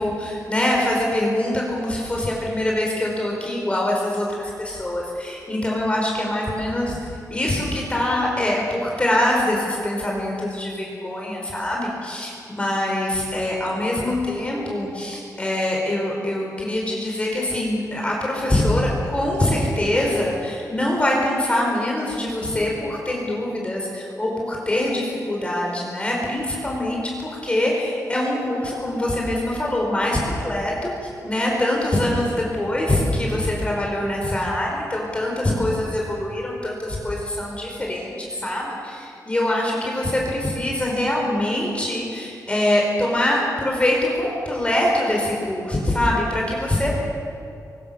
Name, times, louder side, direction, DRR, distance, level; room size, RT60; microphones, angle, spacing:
voice 1, 0.0-47.0, left 1 dB, 20° left, -2 dB, 4.8 m, -24 dB
28.0 x 23.5 x 6.8 m, 2.5 s
wide cardioid pair, 160°, 6 cm